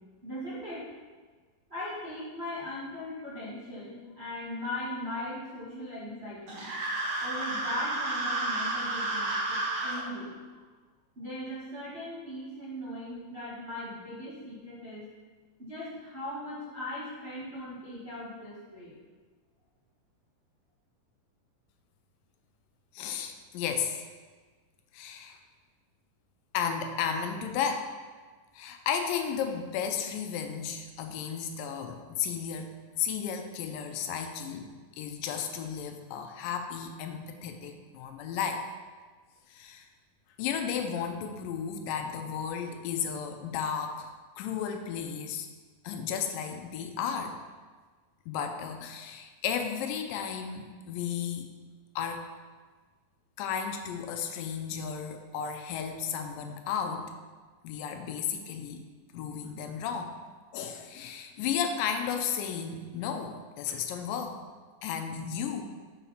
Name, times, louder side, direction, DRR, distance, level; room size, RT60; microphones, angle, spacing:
voice 1, 0.2-0.9 1.7-6.7 7.2-10.3 11.1-15.1 15.6-18.9, left 1 dB, 70° right, -11 dB, 0.5 m, -39 dB
sound 1, 6.5-10.0, right 2 dB, 55° right, 2.1 m, -31 dB
voice 2, 22.9-24.0 24.9-25.4 26.5-27.9 28.5-38.7 39.5-39.9 40.4-44.1 44.4-45.5 45.8-47.4 48.3-51.5 52.0-52.3 53.4-57.1 57.6-58.9 59.1-60.2 60.5-64.4 64.8-65.6, left 7 dB, 80° left, 6 dB, 2.2 m, -34 dB
6.4 x 4.3 x 5.5 m, 1.4 s
omnidirectional pair, 4.0 m